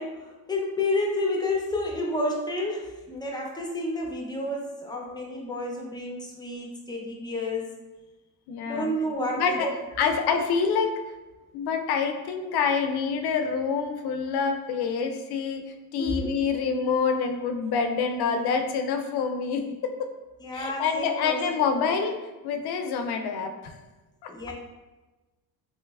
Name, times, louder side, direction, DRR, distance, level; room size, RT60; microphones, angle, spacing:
voice 1, 0.0-7.7 8.7-9.7 16.0-16.3 20.4-21.4 24.3-24.5, left 1 dB, 10° left, -1 dB, 0.6 m, -30 dB
voice 2, 8.5-8.9 9.4-9.7 10.0-10.9 11.5-15.6 15.9-20.1 20.5-22.2 22.4-23.7 24.2-24.3, left 5 dB, 70° left, 5 dB, 0.5 m, -26 dB
3.0 x 3.0 x 2.3 m, 1.1 s
cardioid pair, 100°, 40 cm